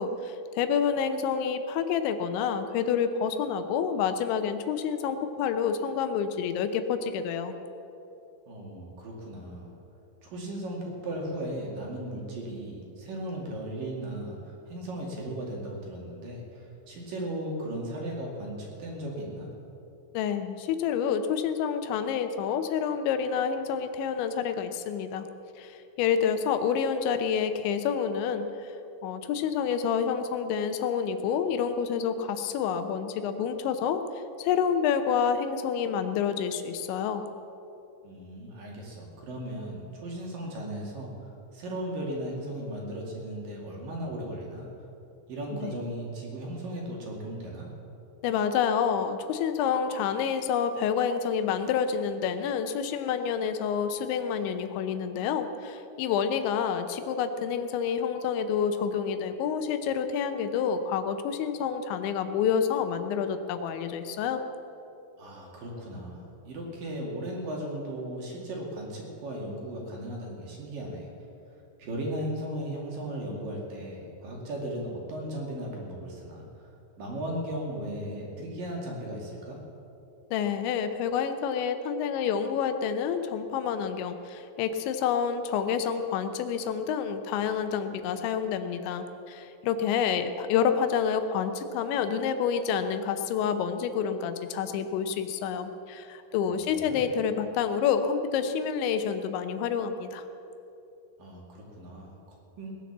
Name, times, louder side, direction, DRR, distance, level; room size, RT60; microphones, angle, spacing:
voice 1, 0.0-7.5 20.1-25.3 25.6-28.8 29.0-34.0 34.4-37.2 45.6-45.7 48.2-64.4 80.3-100.3, left 7 dB, 80° left, 9 dB, 3.1 m, -28 dB
voice 2, 8.5-9.7 10.2-19.5 38.0-44.7 45.3-47.7 65.2-71.1 71.8-76.7 77.0-79.6 96.7-97.0 101.2-102.7, right 1 dB, 55° right, -2 dB, 3.7 m, -36 dB
19.0 x 10.0 x 7.3 m, 2.8 s
omnidirectional pair, 5.3 m